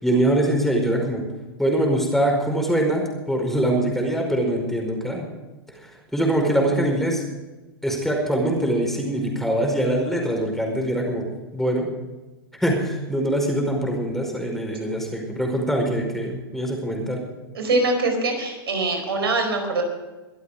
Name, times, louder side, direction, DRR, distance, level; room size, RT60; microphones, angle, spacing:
voice 1, 0.0-1.2 1.6-5.3 5.7-7.2 7.8-11.2 11.5-11.9 12.6-17.2, right 1 dB, ahead, 1 dB, 5.0 m, -23 dB
voice 2, 17.5-19.8, right 2 dB, 85° right, 3 dB, 4.6 m, -23 dB
24.0 x 8.3 x 5.0 m, 1.2 s
hypercardioid pair, 115°, 13 cm